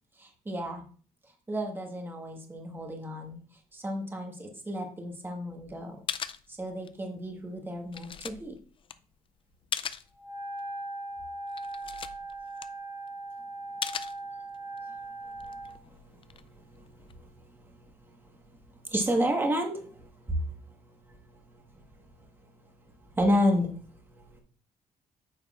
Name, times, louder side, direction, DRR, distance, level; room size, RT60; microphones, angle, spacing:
voice 1, 0.2-0.8 1.5-3.4 3.7-6.0 6.5-8.5 15.2-18.4 18.7-23.8 24.1-24.4, equal, 15° right, 2 dB, 1.3 m, -33 dB
sound 1, 5.7-5.8 6.1-7.1 7.4-10.2 10.6-10.7 11.1-11.2 11.5-13.2 13.8-14.8 15.2-17.5, left 7 dB, 35° left, 0.4 m, -39 dB
Wind instrument woodwind instrument, 10.2-15.8, right 2 dB, 40° right, 2.0 m, -39 dB
9.3 x 6.5 x 2.4 m, 0.42 s
cardioid pair, 135°, 15 cm